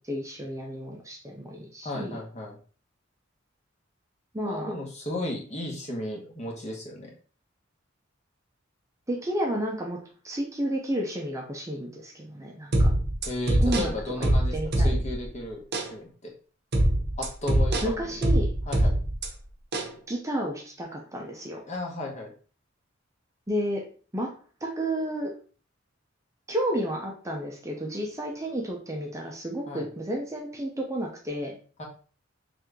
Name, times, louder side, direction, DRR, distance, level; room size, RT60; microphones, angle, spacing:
voice 1, 0.0-2.2 4.3-4.7 9.1-12.9 13.6-13.9 14.2-14.9 17.8-18.5 20.1-21.6 23.5-23.9 24.1-24.3 24.6-25.4 26.5-31.6, right 1 dB, 15° right, 0 dB, 0.6 m, -31 dB
voice 2, 1.8-2.6 4.4-7.1 13.3-15.6 15.9-16.1 17.2-18.2 18.7-18.9 21.7-22.3 29.7-29.9 31.8-31.9, left 1 dB, 35° left, -1 dB, 1.1 m, -34 dB
sound 1, 12.7-15.3 15.7-15.9 16.7-19.3 19.7-19.9, right 1 dB, 55° right, 0.8 m, -23 dB
3.4 x 3.0 x 3.7 m, 0.39 s
head